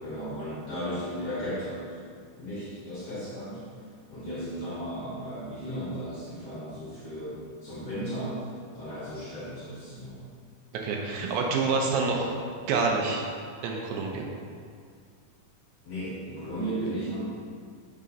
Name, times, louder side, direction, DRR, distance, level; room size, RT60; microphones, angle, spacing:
voice 1, 0.0-1.9 2.4-3.6 4.1-8.4 8.7-10.2 11.1-11.3 11.7-12.2 15.8-17.2, equal, 60° left, -10 dB, 1.7 m, -35 dB
voice 2, 10.7-12.3 12.7-13.3 13.6-14.3, right 4 dB, 80° right, 0 dB, 2.3 m, -27 dB
5.6 x 3.7 x 5.3 m, 2.2 s
omnidirectional pair, 4.3 m